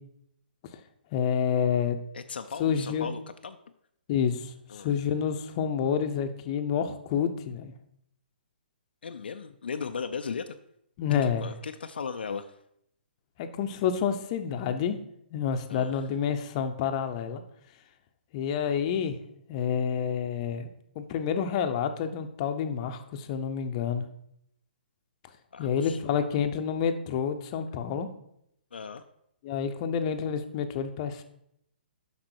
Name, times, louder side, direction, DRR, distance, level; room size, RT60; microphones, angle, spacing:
voice 1, 1.1-2.0 2.6-3.1 4.1-4.5 4.8-7.7 11.0-11.5 13.4-15.0 15.3-17.4 18.3-19.2 19.5-20.7 21.0-24.0 25.6-28.1 29.4-31.2, left 7 dB, 35° left, 7 dB, 0.8 m, -28 dB
voice 2, 2.1-3.6 4.7-4.9 9.0-10.6 11.1-12.5 15.7-16.0 25.5-26.0 28.7-29.0, left 6 dB, 70° left, 7 dB, 0.5 m, -37 dB
7.6 x 5.9 x 4.5 m, 0.74 s
figure-of-eight pair, 130°, 6 cm